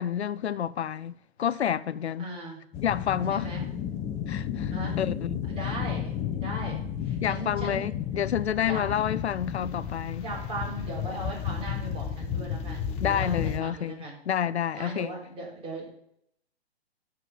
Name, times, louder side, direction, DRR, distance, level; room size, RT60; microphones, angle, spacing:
voice 1, 0.0-2.3 2.8-3.5 4.3-5.4 7.2-10.3 13.0-15.1, left 9 dB, 80° left, 0.5 m, -29 dB
voice 2, 2.2-2.6 3.3-3.6 4.7-5.0 5.5-7.9 8.7-8.8 10.2-14.2 14.7-15.9, right 1 dB, 15° right, 3.8 m, -38 dB
sound 1, 2.7-13.6, left 8 dB, 20° left, 0.8 m, -32 dB
13.0 x 4.9 x 6.0 m
figure-of-eight pair, 125°, 32 cm